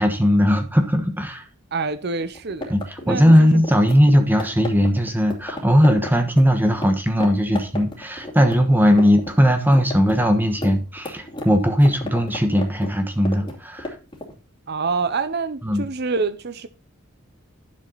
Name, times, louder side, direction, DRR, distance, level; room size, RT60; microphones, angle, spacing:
voice 1, 0.0-1.4 2.7-13.9 15.6-15.8, equal, 10° right, 1.2 m, -18 dB
voice 2, 1.7-2.7 3.1-3.6 14.7-16.7, right 4 dB, 55° right, 0.7 m, -26 dB
sound 1, 2.2-6.9 7.2-7.3 7.5-9.3 9.6-14.3, left 1 dB, 25° left, 2.6 m, -33 dB
11.0 x 7.5 x 4.0 m
head